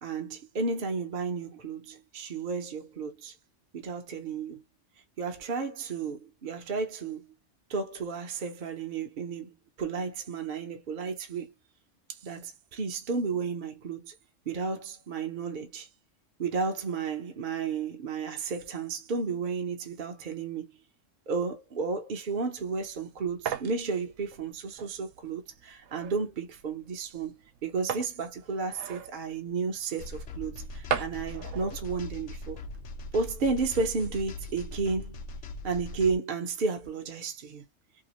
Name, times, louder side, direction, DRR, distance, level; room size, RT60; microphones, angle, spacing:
voice 1, 0.0-3.3 3.7-4.6 5.2-7.3 7.7-11.5 12.1-14.1 14.5-15.9 16.4-20.7 21.3-27.3 27.6-32.6 33.1-35.2 35.6-37.6, right 4 dB, 50° right, 0.7 m, -32 dB
sound 1, 22.6-33.0, right 8 dB, 90° right, 1.0 m, -40 dB
sound 2, 30.0-36.2, left 2 dB, 70° left, 0.9 m, -41 dB
2.7 x 2.4 x 2.9 m
omnidirectional pair, 1.3 m